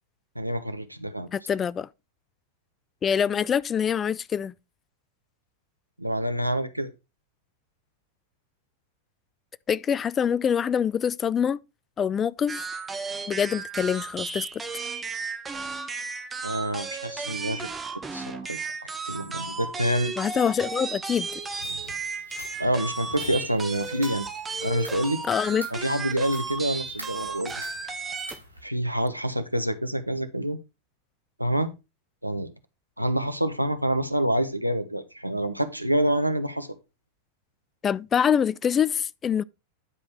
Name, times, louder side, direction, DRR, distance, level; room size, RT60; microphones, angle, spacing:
voice 1, 0.3-1.3 6.0-6.9 16.4-17.7 18.1-18.6 19.0-20.1 22.6-24.3 24.6-25.2 25.7-27.5 28.6-30.6 31.4-31.7 32.2-32.5 33.0-36.7, right 1 dB, 90° right, 0.9 m, -27 dB
voice 2, 1.3-1.9 3.0-4.5 9.7-11.6 12.0-12.6 13.3-14.5 20.2-21.4 25.3-25.7 37.8-39.4, left 8 dB, 25° left, 0.4 m, -25 dB
sound 1, 12.5-28.4, right 4 dB, 15° right, 1.3 m, -34 dB
sound 2, 21.1-28.6, equal, 90° left, 3.0 m, -46 dB
9.9 x 5.2 x 4.4 m
figure-of-eight pair, 90°, 0 cm